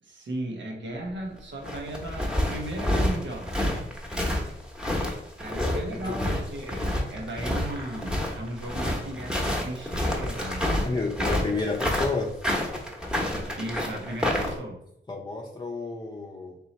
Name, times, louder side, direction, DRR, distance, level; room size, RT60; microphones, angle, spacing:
voice 1, 0.0-3.9 5.4-10.8 13.6-14.8, right 1 dB, 90° right, 0 dB, 1.0 m, -36 dB
sound 1, 1.4-14.6, left 1 dB, 5° right, 0.9 m, -28 dB
voice 2, 10.8-12.4 15.1-16.6, left 3 dB, 25° left, -1 dB, 0.5 m, -30 dB
3.6 x 2.8 x 4.2 m, 0.77 s
wide cardioid pair, 85°, 19 cm